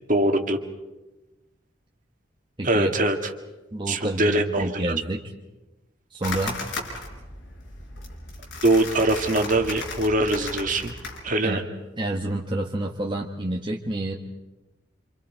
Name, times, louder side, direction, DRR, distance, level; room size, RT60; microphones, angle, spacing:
voice 1, 0.1-0.6 2.6-3.2 3.9-4.9 8.6-10.9 11.2-11.6, right 1 dB, 45° right, 4 dB, 2.0 m, -22 dB
voice 2, 2.6-2.9 3.7-5.2 6.1-6.6 11.4-11.7 12.0-14.1, right 1 dB, 25° right, 0 dB, 1.3 m, -28 dB
sound 1, 6.2-11.2, left 3 dB, 70° left, 4.5 m, -35 dB
28.0 x 27.0 x 4.6 m, 1.1 s
head